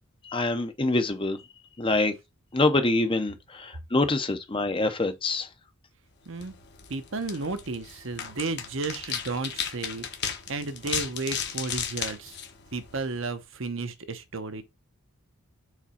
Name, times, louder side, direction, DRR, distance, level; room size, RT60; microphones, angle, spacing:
voice 1, 0.3-1.4 1.8-2.1 2.5-5.5, left 2 dB, 25° left, 0.7 m, -25 dB
sound 1, 6.3-13.2, left 8 dB, 50° left, 1.1 m, -35 dB
voice 2, 6.3-6.6 6.9-10.0 10.5-12.4 12.7-14.6, right 3 dB, 60° right, 0.9 m, -33 dB
4.9 x 4.0 x 5.6 m
head